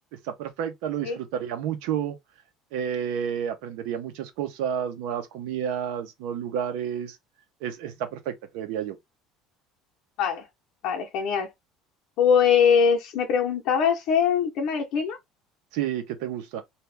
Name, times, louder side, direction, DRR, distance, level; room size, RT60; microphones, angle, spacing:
voice 1, 0.2-2.2 2.7-7.2 7.6-9.0 15.7-16.6, right 9 dB, 80° right, 0.8 m, -30 dB
voice 2, 10.8-11.5 12.2-15.2, left 7 dB, 60° left, 0.8 m, -22 dB
2.8 x 2.4 x 3.3 m
cardioid pair, 145°, 0 cm